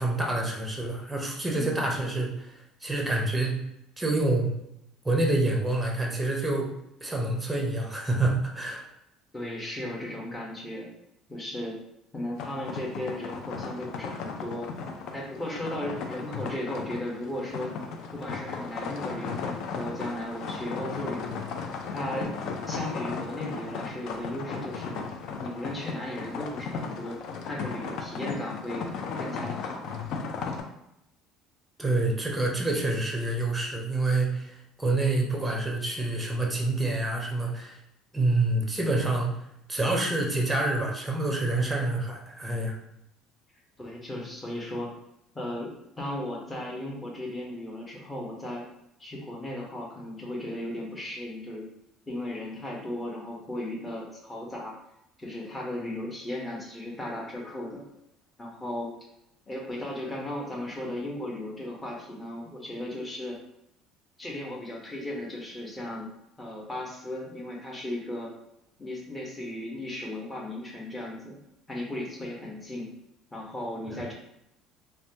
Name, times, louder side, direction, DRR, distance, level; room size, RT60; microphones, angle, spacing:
voice 1, 0.0-3.6 4.0-4.5 5.0-6.7 7.0-8.8 31.8-37.8 38.1-39.3 39.7-42.7 73.9-74.0, right 2 dB, 10° right, 0 dB, 0.7 m, -27 dB
voice 2, 9.3-10.9 11.3-11.8 12.1-14.6 15.1-17.7 18.1-21.4 21.9-22.4 22.7-25.0 25.4-27.2 27.5-28.9 29.2-29.9 43.8-44.9 45.3-45.7 46.0-48.6 49.0-51.7 52.1-54.7 55.2-57.8 58.4-58.9 59.5-63.4 64.2-66.1 66.4-68.3 68.8-71.4 71.7-72.9 73.3-74.1, left 1 dB, 15° left, -2 dB, 1.0 m, -36 dB
sound 1, 12.4-30.6, left 5 dB, 65° left, 0.4 m, -36 dB
3.1 x 2.2 x 2.8 m, 0.81 s
supercardioid pair, 90°, 0 cm